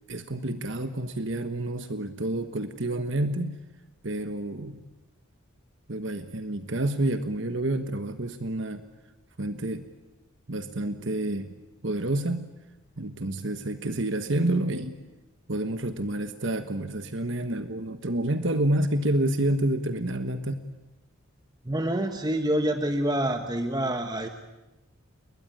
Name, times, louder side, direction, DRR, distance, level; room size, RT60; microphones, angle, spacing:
voice 1, 0.1-3.6 4.0-4.8 5.9-8.8 9.4-9.9 10.5-11.5 11.8-12.5 13.0-15.0 15.5-20.6, right 1 dB, 55° right, 9 dB, 1.3 m, -29 dB
voice 2, 21.6-24.3, right 1 dB, 20° right, 6 dB, 1.2 m, -27 dB
30.0 x 21.5 x 9.2 m, 1.1 s
head